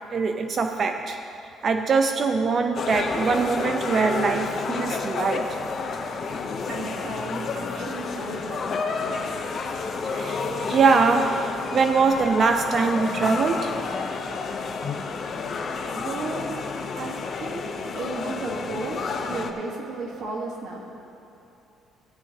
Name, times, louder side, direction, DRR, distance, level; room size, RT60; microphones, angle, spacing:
voice 1, 0.1-1.2 1.6-5.6 8.6-8.7 10.0-13.8, right 4 dB, 35° right, 6 dB, 0.4 m, -23 dB
sound 1, 2.7-19.5, left 4 dB, 40° left, 0.7 m, -30 dB
voice 2, 6.7-9.5 15.9-16.6 16.9-17.7 17.9-20.8, right 3 dB, 60° right, -1 dB, 1.4 m, -34 dB
16.5 x 10.0 x 2.8 m, 2.9 s
cardioid pair, 150°, 0 cm